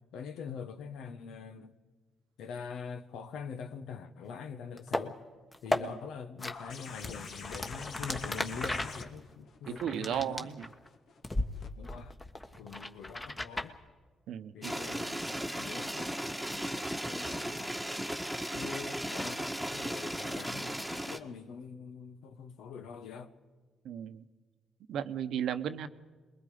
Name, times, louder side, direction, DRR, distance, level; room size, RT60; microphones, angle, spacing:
voice 1, 0.1-1.7 2.4-5.2 5.6-10.5 11.8-12.3 12.6-13.8 14.5-17.8 18.3-23.3, left 6 dB, 85° left, 1.3 m, -44 dB
sound 1, 4.8-5.0 5.5-5.8 6.4-6.5 7.0-10.9 11.2-11.5 11.8-13.7, left 1 dB, 20° left, 1.4 m, -35 dB
sound 2, 6.4-11.7 13.1-13.2, left 5 dB, 65° left, 1.6 m, -47 dB
voice 2, 9.7-10.7 14.3-14.7 23.8-24.2 24.9-25.9, right 9 dB, 75° right, 0.9 m, -35 dB
sound 3, 14.6-21.2, equal, ahead, 1.5 m, -36 dB
27.5 x 21.5 x 5.1 m
cardioid pair, 90°, 0 cm